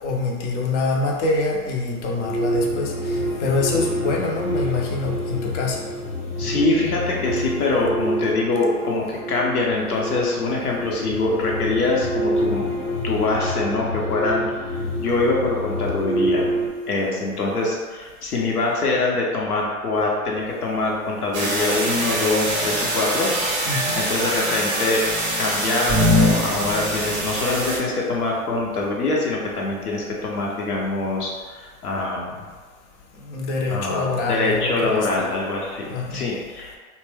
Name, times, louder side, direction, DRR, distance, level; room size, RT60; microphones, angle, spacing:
voice 1, 0.0-5.8 23.7-24.0 33.2-35.3 35.9-36.2, left 3 dB, 50° left, 0 dB, 0.7 m, -25 dB
sound 1, 2.0-16.7, equal, 15° left, 0.8 m, -27 dB
voice 2, 6.4-12.8 13.0-16.5 16.9-23.3 23.6-25.0 25.4-32.4 33.7-36.8, left 2 dB, 85° left, -2 dB, 0.9 m, -24 dB
sound 2, 21.3-27.8, equal, 20° right, 0.5 m, -23 dB
2.6 x 2.2 x 3.3 m, 1.4 s
hypercardioid pair, 115°, 44 cm